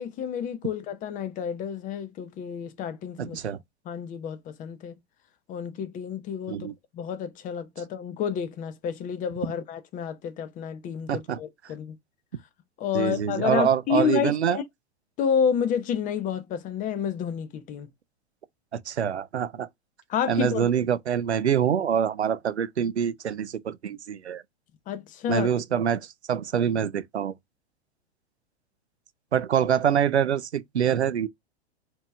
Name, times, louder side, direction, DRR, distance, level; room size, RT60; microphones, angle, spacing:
voice 1, 0.0-3.4 3.9-5.0 5.5-6.7 6.9-12.0 12.8-14.6 15.2-17.9 20.1-20.7 24.9-25.5, left 7 dB, 25° left, 0.7 m, -29 dB
voice 2, 3.2-3.6 6.5-6.7 11.1-11.4 12.9-14.6 18.7-19.7 20.3-24.4 25.3-27.3 29.3-31.3, right 8 dB, 85° right, 0.5 m, -25 dB
4.4 x 2.8 x 2.3 m
figure-of-eight pair, 95°, 32 cm